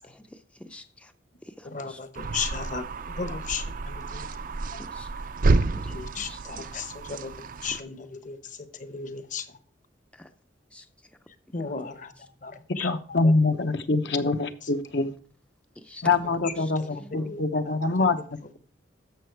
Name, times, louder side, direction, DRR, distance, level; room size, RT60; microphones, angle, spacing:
voice 1, 0.0-1.1 1.6-2.0 4.8-6.0 6.3-6.4 10.2-10.3 10.7-10.9 11.6-11.7 15.8-16.1 16.6-17.4, left 1 dB, 5° left, 0.5 m, -46 dB
voice 2, 1.6-4.3 4.7-4.8 5.9-7.3 7.6-8.4 8.7-9.5 11.5-12.1 12.4-12.9 13.2-13.3 14.2-14.3 14.6-14.7 16.4-17.7, left 5 dB, 45° left, 0.9 m, -36 dB
sound 1, 2.2-7.8, right 3 dB, 45° right, 0.5 m, -29 dB
voice 3, 12.8-15.1 16.0-18.2, left 3 dB, 70° left, 0.9 m, -24 dB
11.5 x 7.0 x 4.6 m
head